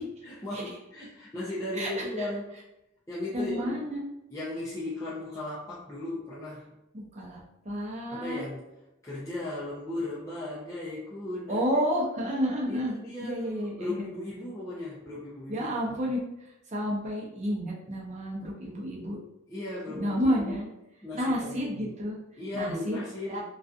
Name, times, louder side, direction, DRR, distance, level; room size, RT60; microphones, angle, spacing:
voice 1, 0.2-2.5 3.1-3.8 4.3-6.8 8.1-8.7 9.0-11.6 12.7-16.1 19.5-20.6 21.0-22.0 22.4-23.4, left 1 dB, 15° left, -9 dB, 0.5 m, -36 dB
voice 2, 1.7-2.3 3.3-4.0 6.9-8.4 11.5-14.0 15.5-19.2 19.9-20.7 21.1-22.2 22.5-23.0 23.3-23.4, equal, 35° right, -3 dB, 0.6 m, -31 dB
2.5 x 2.3 x 2.4 m, 0.88 s
head